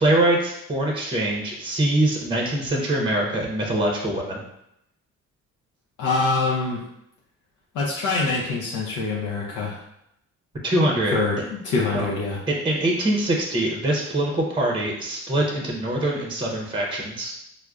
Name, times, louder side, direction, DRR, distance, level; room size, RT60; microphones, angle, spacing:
voice 1, 0.0-4.4 10.6-11.2 11.9-12.1 12.5-17.3, right 1 dB, 15° right, 0 dB, 0.6 m, -23 dB
voice 2, 6.0-6.8 7.7-9.8 11.1-12.4, left 3 dB, 90° left, -4 dB, 0.6 m, -24 dB
4.8 x 2.1 x 2.3 m, 0.80 s
cardioid pair, 90°, 30 cm